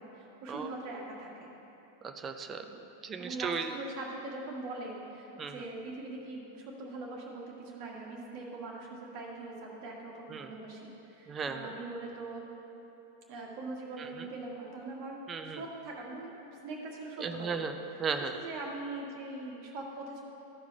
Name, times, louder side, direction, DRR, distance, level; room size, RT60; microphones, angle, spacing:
voice 1, 0.0-1.5 3.2-12.5 13.3-16.3 16.6-17.6 18.4-20.2, right 2 dB, 45° right, -1 dB, 1.5 m, -42 dB
voice 2, 2.0-3.7 5.4-5.6 10.3-10.5 11.3-11.7 14.0-14.3 15.3-15.6 17.2-17.7 18.0-18.4, right 5 dB, 25° right, 7 dB, 0.5 m, -36 dB
13.5 x 4.8 x 4.4 m, 3.0 s
figure-of-eight pair, 90°, 0 cm